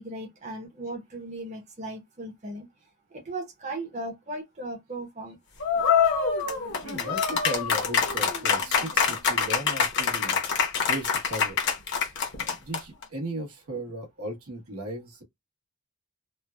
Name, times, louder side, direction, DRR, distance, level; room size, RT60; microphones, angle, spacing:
voice 1, 0.0-2.7 3.1-5.4, right 2 dB, 30° right, 0.8 m, -37 dB
sound 1, 5.6-13.0, left 6 dB, 50° left, 0.8 m, -25 dB
voice 2, 6.8-10.4 10.8-11.6 12.3-15.2, right 1 dB, 80° right, 1.2 m, -36 dB
3.1 x 2.2 x 2.3 m
head